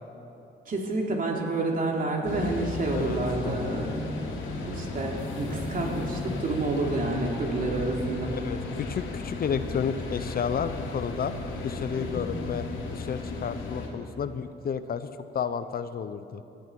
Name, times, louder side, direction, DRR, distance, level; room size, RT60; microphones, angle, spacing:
voice 1, 0.7-4.0 4.6-8.4 12.0-12.3, right 2 dB, 45° right, 0 dB, 2.9 m, -29 dB
sound 1, 2.2-13.9, left 3 dB, 75° left, 3.0 m, -34 dB
voice 2, 2.9-3.8 8.4-11.3 11.6-12.6 12.9-15.1 15.3-16.4, left 7 dB, 50° left, 11 dB, 0.7 m, -31 dB
20.5 x 14.0 x 4.6 m, 2.8 s
cardioid pair, 90°, 20 cm